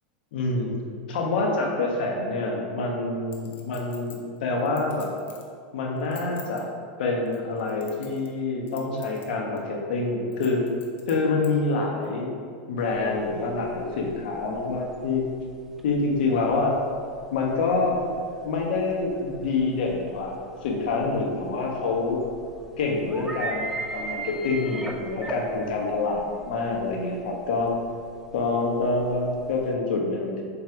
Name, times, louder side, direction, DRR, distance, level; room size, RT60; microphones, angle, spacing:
voice 1, 0.3-0.7 1.1-5.1 5.7-6.7 7.0-10.6 11.1-12.3 12.7-15.3 15.8-16.7 17.3-18.0 18.4-22.2 22.8-27.7 28.3-30.4, left 3 dB, 75° left, 0 dB, 1.4 m, -26 dB
Chink clink, 3.3-5.5 6.0-6.6 7.3-8.4 8.7-9.3 9.6-9.7 10.3-11.5 12.0-12.1, left 7 dB, 40° left, 1.0 m, -46 dB
sound 1, 12.8-29.7, right 2 dB, 5° right, 0.6 m, -40 dB
7.4 x 3.5 x 4.6 m, 2.3 s
supercardioid pair, 140°, 5 cm